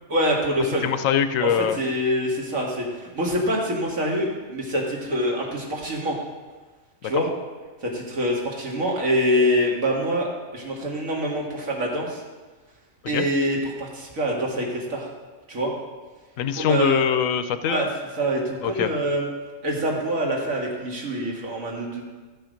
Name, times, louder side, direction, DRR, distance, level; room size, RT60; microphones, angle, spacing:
voice 1, 0.1-0.9 1.4-6.2 7.0-7.3 7.8-12.2 13.1-15.1 15.5-15.7 16.6-17.0 17.6-17.9 18.2-19.3 19.6-22.0, equal, 80° right, -2 dB, 2.3 m, -25 dB
voice 2, 0.8-1.8 13.0-13.3 16.4-17.9 18.6-18.9, left 8 dB, 80° left, 11 dB, 1.0 m, -23 dB
13.5 x 5.8 x 5.1 m, 1.3 s
omnidirectional pair, 1.4 m